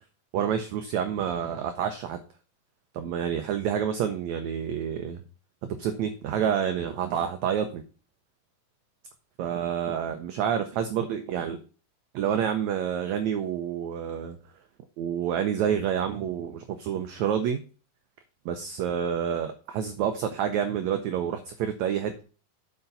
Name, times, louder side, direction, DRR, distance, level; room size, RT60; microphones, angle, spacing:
voice 1, 0.3-2.2 2.9-5.2 5.8-7.8 9.4-11.6 12.1-14.4 15.0-17.6 18.4-22.2, right 8 dB, 80° right, 7 dB, 1.6 m, -28 dB
8.1 x 5.2 x 5.4 m, 0.36 s
omnidirectional pair, 4.1 m